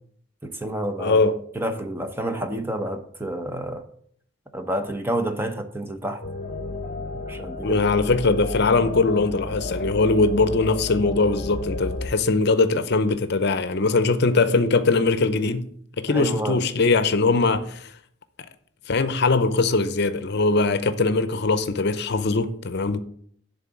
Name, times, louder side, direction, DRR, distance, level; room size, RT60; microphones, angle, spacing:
voice 1, 0.4-1.2 1.5-3.9 4.5-6.2 7.1-7.8 16.1-16.6, right 1 dB, 10° right, 0.8 m, -29 dB
voice 2, 1.0-1.4 7.6-15.7 16.0-17.9 18.9-23.0, left 3 dB, 55° left, 0.7 m, -21 dB
sound 1, 6.2-12.1, left 2 dB, 40° left, 1.0 m, -32 dB
11.0 x 3.9 x 7.3 m
head